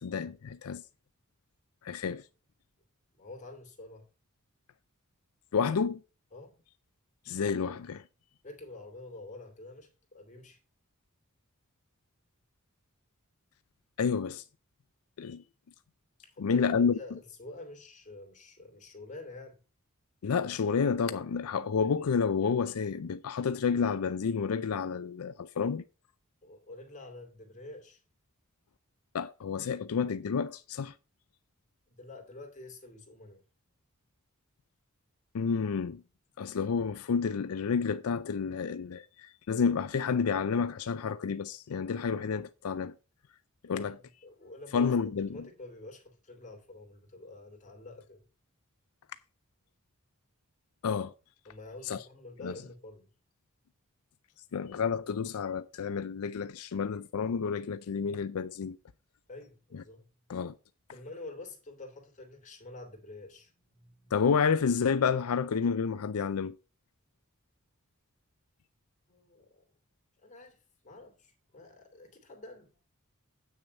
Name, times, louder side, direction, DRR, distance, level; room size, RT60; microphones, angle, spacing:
voice 1, 0.0-0.8 1.8-2.2 5.5-6.0 7.3-8.0 14.0-14.4 15.2-15.4 16.4-17.0 20.2-25.8 29.1-30.9 35.3-36.0 36.4-42.9 43.6-43.9 44.7-45.4 50.8-51.1 51.8-52.0 52.4-52.6 54.5-58.8 59.7-59.8 60.3-60.5 64.1-66.6, left 6 dB, 85° left, 0.5 m, -30 dB
voice 2, 3.2-4.1 6.3-6.6 8.4-10.6 16.2-19.6 26.4-28.0 31.9-33.4 43.7-44.0 44.2-48.2 51.4-53.1 59.3-60.1 60.9-64.1 69.1-69.6 70.2-72.8, left 2 dB, 35° left, 2.9 m, -48 dB
8.6 x 6.4 x 5.3 m
head